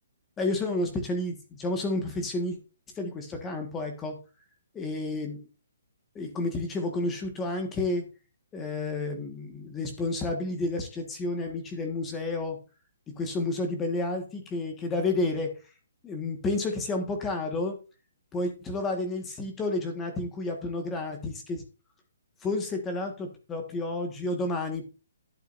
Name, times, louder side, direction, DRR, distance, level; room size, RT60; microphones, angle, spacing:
voice 1, 0.4-2.6 2.9-4.2 4.7-5.5 6.1-8.0 8.5-12.6 13.1-15.5 16.0-17.8 18.3-21.6 22.4-24.8, left 2 dB, 10° left, 4 dB, 1.6 m, -30 dB
11.5 x 8.8 x 2.6 m, 0.32 s
hypercardioid pair, 175°, 0 cm